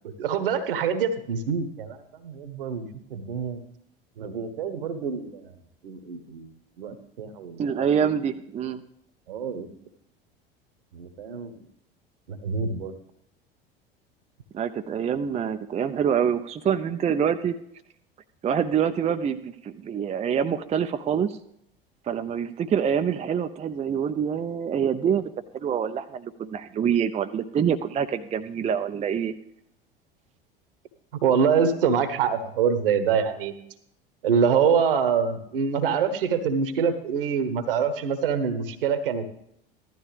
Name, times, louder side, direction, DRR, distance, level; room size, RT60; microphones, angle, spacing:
voice 1, 0.2-2.0 2.2-3.6 4.2-5.4 5.8-6.5 6.8-7.7 8.0-8.2 9.3-9.7 10.9-11.6 12.3-12.9 31.2-33.5 34.2-39.3, right 6 dB, 65° right, 11 dB, 1.3 m, -25 dB
voice 2, 7.6-8.8 14.5-17.6 18.4-21.4 22.1-29.3, right 8 dB, 20° right, 8 dB, 0.6 m, -26 dB
15.0 x 12.5 x 3.4 m, 0.75 s
figure-of-eight pair, 70°, 29 cm